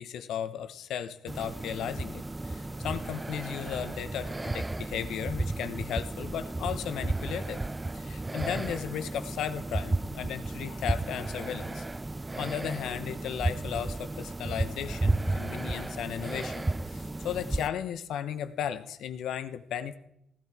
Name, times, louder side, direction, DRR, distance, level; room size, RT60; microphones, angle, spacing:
voice 1, 0.0-7.6 7.9-11.8 12.4-20.0, left 9 dB, 75° left, 11 dB, 1.0 m, -35 dB
sound 1, 1.3-17.7, right 2 dB, 15° right, 0.5 m, -33 dB
15.5 x 12.0 x 4.9 m, 0.79 s
cardioid pair, 90°, 0 cm